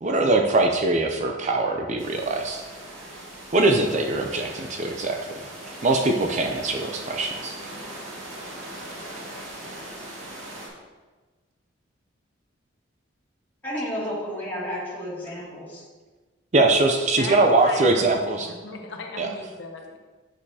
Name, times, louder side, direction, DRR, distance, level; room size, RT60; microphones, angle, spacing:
voice 1, 0.0-2.6 3.5-5.5 5.8-7.5 16.5-18.5 19.2-19.3, right 2 dB, 35° right, 3 dB, 0.5 m, -22 dB
sound 1, 2.0-10.7, right 1 dB, 85° right, 2.0 m, -40 dB
voice 2, 13.6-15.8, equal, 10° left, -8 dB, 2.3 m, -31 dB
voice 3, 17.2-18.1 18.4-20.0, left 3 dB, 65° left, 2 dB, 0.8 m, -37 dB
8.6 x 6.6 x 2.8 m, 1.3 s
head